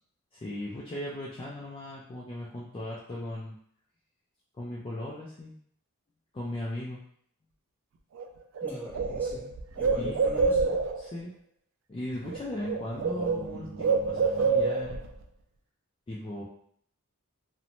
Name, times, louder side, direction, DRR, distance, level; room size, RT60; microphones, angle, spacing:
voice 1, 0.3-3.5 4.5-5.5 6.3-7.0 9.9-10.2 11.0-11.3 11.9-15.0 16.1-16.4, left 1 dB, 25° left, -6 dB, 0.3 m, -37 dB
Bird, 8.2-8.3 8.6-11.1 12.1-12.4 12.6-15.1, right 4 dB, 60° right, 0.3 m, -27 dB
voice 2, 8.6-10.8, left 1 dB, 10° left, -6 dB, 0.7 m, -42 dB
2.6 x 2.0 x 2.9 m, 0.64 s
head